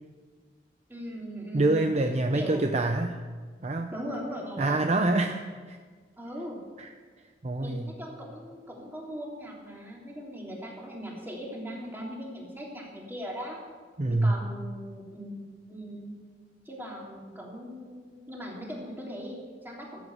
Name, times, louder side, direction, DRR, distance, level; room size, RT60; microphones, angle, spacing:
voice 1, 0.9-1.8 2.3-2.7 3.9-5.2 6.2-6.6 7.6-13.6 14.0-16.1 16.6-20.0, equal, 10° right, -3 dB, 3.2 m, -39 dB
voice 2, 1.5-3.2 3.6-3.9 4.6-5.8 6.8-6.9 7.4-7.9 14.0-14.3, right 2 dB, 40° right, 5 dB, 0.6 m, -26 dB
14.5 x 8.1 x 8.0 m, 1.5 s
head